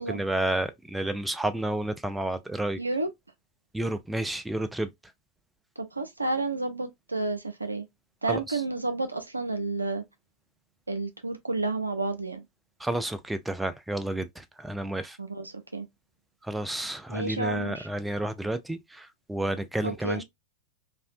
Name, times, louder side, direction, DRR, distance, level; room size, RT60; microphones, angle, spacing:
voice 1, 0.0-2.8 3.7-4.9 8.3-8.6 12.8-15.2 16.4-20.2, right 1 dB, 5° right, 0.3 m, -31 dB
voice 2, 2.8-3.1 5.8-7.9 8.2-10.0 10.9-12.4 15.2-15.9 17.1-17.9 19.8-20.2, right 2 dB, 80° right, 0.4 m, -31 dB
2.5 x 2.0 x 2.4 m
figure-of-eight pair, 90°, 0 cm